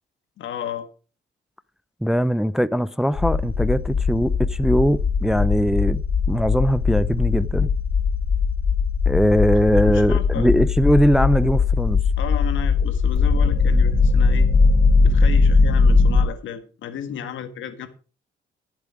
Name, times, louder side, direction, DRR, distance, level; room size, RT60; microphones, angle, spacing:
voice 1, 0.4-0.9 9.8-10.5 12.2-14.5 15.0-17.9, left 9 dB, 75° left, 1.7 m, -33 dB
voice 2, 2.0-6.0 6.3-7.7 9.1-12.0, equal, ahead, 0.5 m, -20 dB
sound 1, 3.1-16.2, left 4 dB, 50° left, 3.0 m, -19 dB
13.5 x 7.3 x 4.8 m
cardioid pair, 90°, 20 cm